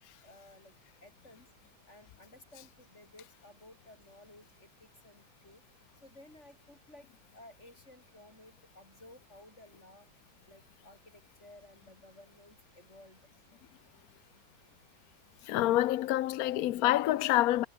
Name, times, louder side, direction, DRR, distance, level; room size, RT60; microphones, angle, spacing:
voice 1, 0.2-1.5 1.9-5.6 6.0-10.1 10.4-13.2 13.5-13.6, left 1 dB, 35° left, 8.0 m, -56 dB
voice 2, 15.5-17.7, left 14 dB, 75° left, 0.8 m, -27 dB
omnidirectional pair, 2.2 m